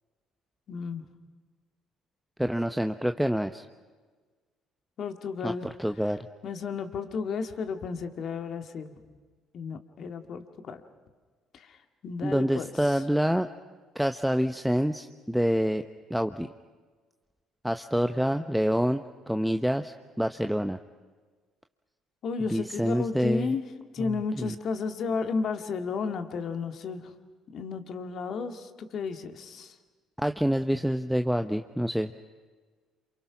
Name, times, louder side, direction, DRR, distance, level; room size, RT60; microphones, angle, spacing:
voice 1, 0.7-1.0 5.0-5.7 6.4-9.0 9.5-10.8 11.5-11.8 12.0-12.9 22.2-23.6 23.9-27.0 27.5-29.7, left 5 dB, 55° left, 7 dB, 2.3 m, -33 dB
voice 2, 2.4-3.7 5.4-6.3 12.2-13.5 13.9-15.8 16.1-16.5 17.6-20.8 22.5-23.5 24.0-24.5 30.2-32.1, equal, ahead, 7 dB, 1.0 m, -27 dB
28.5 x 27.5 x 6.1 m, 1.4 s
hypercardioid pair, 55°, 0 cm